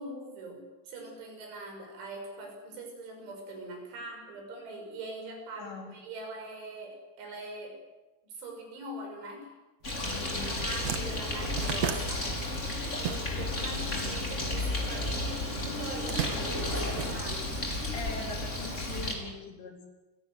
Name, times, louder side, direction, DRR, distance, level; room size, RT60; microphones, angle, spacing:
voice 1, 0.0-7.8 8.2-9.5 10.3-12.3 12.9-17.6 19.2-19.3, right 2 dB, 85° right, 3 dB, 8.6 m, -42 dB
voice 2, 5.6-5.9 10.1-10.6 17.9-19.9, left 4 dB, 70° left, 3 dB, 6.1 m, -41 dB
Bird, 9.8-19.1, left 2 dB, 15° left, 3.8 m, -33 dB
sound 1, 10.7-13.7 13.9-15.1 15.8-17.8, right 9 dB, 65° right, 1.7 m, -36 dB
29.5 x 17.0 x 9.4 m, 1.1 s
omnidirectional pair, 5.3 m